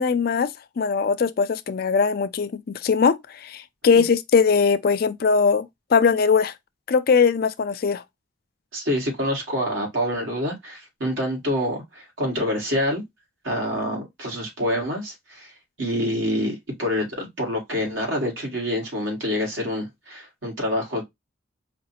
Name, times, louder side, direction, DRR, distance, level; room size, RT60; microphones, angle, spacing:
voice 1, 0.0-6.5 6.9-8.0, left 5 dB, 50° left, 0.4 m, -21 dB
voice 2, 8.7-13.0 13.4-15.5 15.8-21.0, equal, 75° right, 1.9 m, -26 dB
5.0 x 2.4 x 2.7 m
head